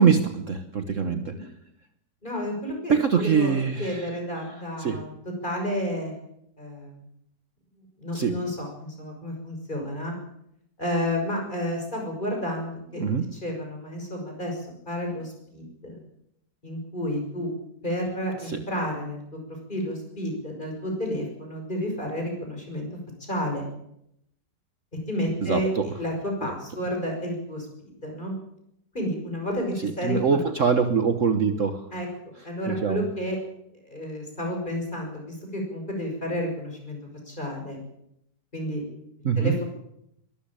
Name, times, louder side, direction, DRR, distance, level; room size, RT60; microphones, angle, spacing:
voice 1, 0.0-1.3 2.9-4.0 4.8-5.0 8.1-8.3 13.0-13.2 18.5-18.6 25.4-25.9 30.0-31.9 32.8-33.0 39.2-39.5, right 6 dB, 50° right, 8 dB, 1.4 m, -23 dB
voice 2, 1.1-1.4 2.2-5.1 5.4-6.1 6.6-7.0 8.0-10.1 10.8-13.0 13.3-16.0 16.6-17.5 17.8-19.4 19.7-22.9 23.2-23.7 25.1-28.3 28.9-30.4 31.9-32.1 32.4-33.4 33.8-37.8 38.5-38.8 39.4-39.6, equal, 25° left, 2 dB, 6.2 m, -31 dB
22.5 x 13.0 x 8.8 m, 0.78 s
omnidirectional pair, 1.8 m